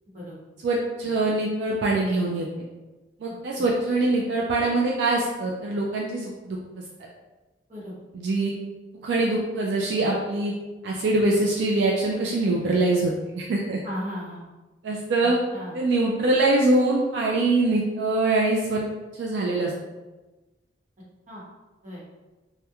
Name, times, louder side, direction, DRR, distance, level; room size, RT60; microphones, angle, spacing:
voice 1, 0.6-2.5 3.2-6.6 8.1-8.5 9.0-10.5 10.8-13.8 14.8-15.4 15.7-18.8 19.1-19.7, right 2 dB, 75° right, -2 dB, 0.3 m, -23 dB
voice 2, 13.8-14.5 15.2-15.7 21.3-21.5 21.8-22.1, equal, 40° right, -7 dB, 0.8 m, -36 dB
2.8 x 2.1 x 2.3 m, 1.2 s
head